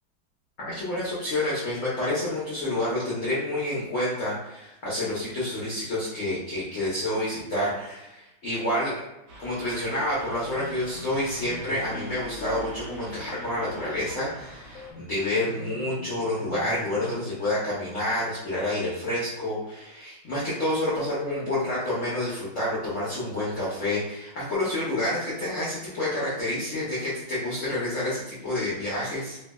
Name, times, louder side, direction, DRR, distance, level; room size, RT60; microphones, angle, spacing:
voice 1, 0.6-8.9 9.4-29.4, left 1 dB, 55° left, -8 dB, 0.9 m, -29 dB
sound 1, 9.3-14.9, right 1 dB, 70° right, 0.7 m, -45 dB
sound 2, 10.4-17.2, left 1 dB, 80° left, 1.4 m, -44 dB
3.2 x 2.6 x 2.2 m, 0.93 s
omnidirectional pair, 2.2 m